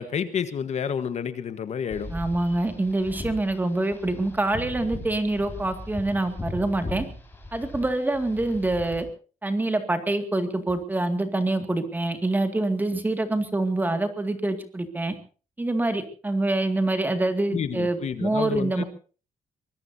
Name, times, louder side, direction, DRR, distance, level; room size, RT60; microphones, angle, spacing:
voice 1, 0.0-2.1 17.5-18.8, left 7 dB, 55° left, 12 dB, 1.4 m, -29 dB
sound 1, 1.9-9.0, left 1 dB, 15° left, 5.0 m, -39 dB
voice 2, 2.1-7.1 7.5-9.1 9.4-15.1 15.6-18.8, right 2 dB, 15° right, 8 dB, 2.2 m, -26 dB
24.0 x 21.5 x 2.8 m, 0.38 s
wide cardioid pair, 180°, 14 cm